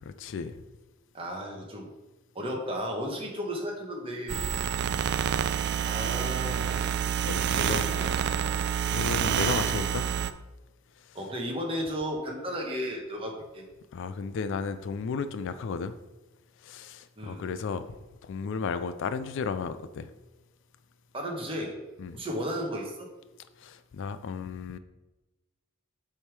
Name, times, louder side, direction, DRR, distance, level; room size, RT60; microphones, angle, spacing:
voice 1, 0.0-0.6 4.8-5.1 7.2-7.9 8.9-10.2 11.0-11.2 13.9-15.9 16.6-17.9 18.2-20.1 22.0-22.2 23.6-24.8, left 5 dB, 60° left, 12 dB, 0.3 m, -34 dB
voice 2, 1.1-1.9 2.3-4.5 5.8-6.8 7.5-8.1 8.4-8.6 11.1-13.6 17.2-17.4 21.1-21.8 22.1-23.1, equal, 25° right, 0 dB, 1.2 m, -34 dB
sound 1, 4.3-10.3, right 9 dB, 55° right, 0.3 m, -28 dB
7.1 x 3.5 x 4.7 m, 1.1 s
head